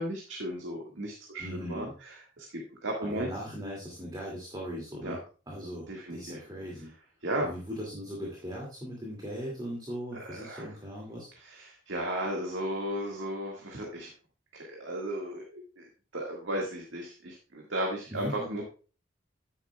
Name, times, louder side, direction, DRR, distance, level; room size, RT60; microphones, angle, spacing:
voice 1, 0.0-3.3 5.0-5.2 5.9-6.4 7.2-7.5 10.1-10.7 11.4-14.1 14.5-15.9 16.1-18.6, right 1 dB, 85° right, 0 dB, 1.7 m, -35 dB
voice 2, 1.4-1.9 3.0-5.2 5.5-6.9 7.4-11.3 18.1-18.6, equal, 20° right, -3 dB, 2.2 m, -39 dB
10.5 x 9.3 x 2.2 m, 0.36 s
head